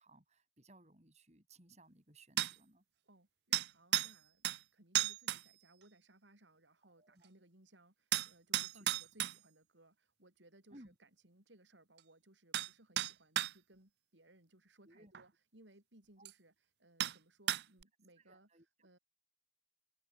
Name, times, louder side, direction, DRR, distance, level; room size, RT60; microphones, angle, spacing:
voice 1, 0.0-2.8 6.8-7.3 8.7-8.9 10.7-11.0 14.8-15.1 16.2-16.3 18.2-18.9, right 2 dB, 35° right, 5.7 m, -61 dB
sound 1, 2.4-2.6 3.5-4.1 4.4-4.6 4.9-5.4 8.1-9.4 12.0-12.1 12.5-12.7 13.0-13.5 15.1-15.2 16.2-16.3 17.0-17.2 17.5-17.8, right 13 dB, 65° right, 0.4 m, -34 dB
voice 2, 3.0-16.5 16.8-18.5 18.8-19.0, right 1 dB, 90° right, 5.7 m, -65 dB
open air
head